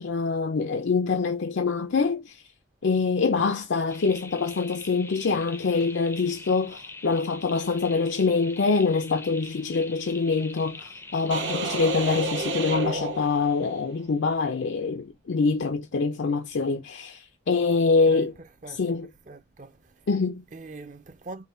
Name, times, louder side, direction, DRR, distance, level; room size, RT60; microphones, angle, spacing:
voice 1, 0.0-2.4 2.8-18.3 18.7-19.1 20.1-20.4, left 4 dB, 70° left, 0.5 m, -25 dB
sound 1, 3.9-12.4, left 3 dB, 10° left, 0.4 m, -44 dB
sound 2, 11.3-13.9, right 2 dB, 70° right, 1.1 m, -31 dB
voice 2, 18.1-19.0 19.3-20.1 20.5-21.5, right 3 dB, 40° right, 0.6 m, -43 dB
5.6 x 2.2 x 4.2 m
head